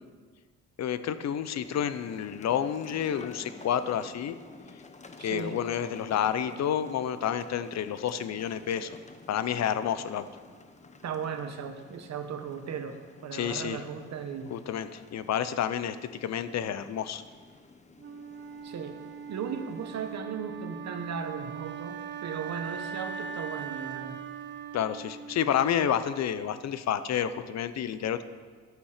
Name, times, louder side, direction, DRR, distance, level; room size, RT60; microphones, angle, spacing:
voice 1, 0.8-4.4 5.2-9.0 9.3-10.3 13.3-13.8 14.5-17.2 24.7-28.2, left 9 dB, 60° left, 13 dB, 0.7 m, -30 dB
sound 1, 1.6-20.2, left 3 dB, 25° left, 0.9 m, -51 dB
voice 2, 5.2-5.6 11.0-14.5 18.6-19.0 19.3-24.2, right 6 dB, 60° right, 8 dB, 1.2 m, -37 dB
Wind instrument woodwind instrument, 18.0-26.0, right 6 dB, 35° right, 0.7 m, -40 dB
11.5 x 8.7 x 5.0 m, 1.5 s
cardioid pair, 90°, 30 cm